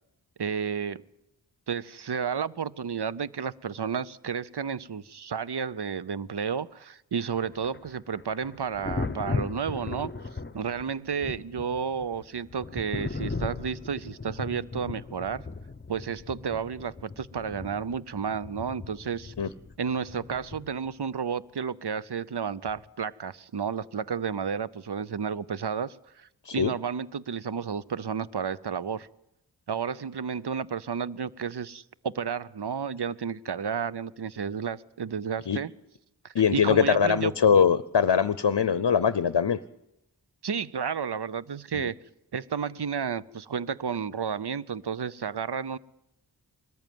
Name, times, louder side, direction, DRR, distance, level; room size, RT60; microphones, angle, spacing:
voice 1, 0.4-1.0 1.7-10.1 10.5-15.5 15.9-19.3 19.8-29.1 29.7-35.7 36.2-37.3 40.4-41.9 42.3-45.8, right 6 dB, 65° right, 0.7 m, -32 dB
Thunder, 7.4-21.0 22.7-22.9, left 3 dB, 25° left, 0.8 m, -37 dB
voice 2, 36.3-39.6 41.7-41.9, left 7 dB, 70° left, 0.6 m, -22 dB
21.0 x 14.0 x 9.3 m
wide cardioid pair, 45°, 42 cm